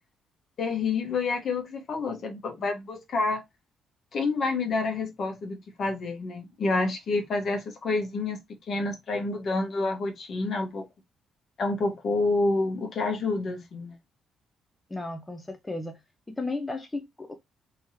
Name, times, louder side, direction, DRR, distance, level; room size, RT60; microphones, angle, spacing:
voice 1, 0.6-3.4 4.1-8.4 8.7-10.9 11.6-13.9, left 3 dB, 55° left, 1.3 m, -28 dB
voice 2, 14.9-16.0 16.3-17.3, left 2 dB, 15° left, 0.6 m, -34 dB
3.5 x 3.1 x 2.8 m
cardioid pair, 90°, 0 cm